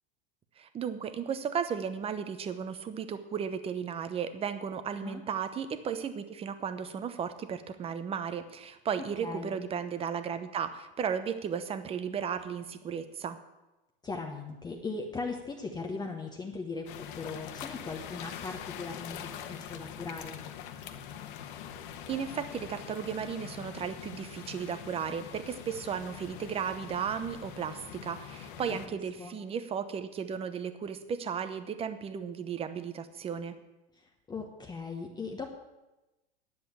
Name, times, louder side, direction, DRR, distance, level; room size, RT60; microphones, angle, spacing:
voice 1, 0.6-13.4 22.1-33.5, right 7 dB, 20° right, 11 dB, 0.9 m, -35 dB
voice 2, 9.2-9.5 14.0-20.4 28.9-29.3 34.0-35.5, left 4 dB, 15° left, 2 dB, 1.1 m, -39 dB
sound 1, 16.9-28.9, left 9 dB, 55° left, 1.3 m, -44 dB
10.5 x 7.6 x 8.4 m, 1.0 s
supercardioid pair, 135°, 30 cm